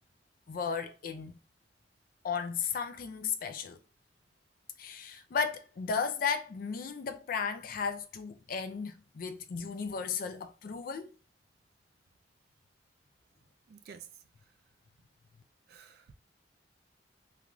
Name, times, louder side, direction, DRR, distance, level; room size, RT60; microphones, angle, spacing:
voice 1, 0.5-1.4 2.2-3.8 4.8-11.1, left 6 dB, 50° left, 0.4 m, -35 dB
voice 2, 13.7-14.2 15.7-16.1, right 7 dB, 60° right, 0.3 m, -51 dB
2.4 x 2.4 x 2.9 m
head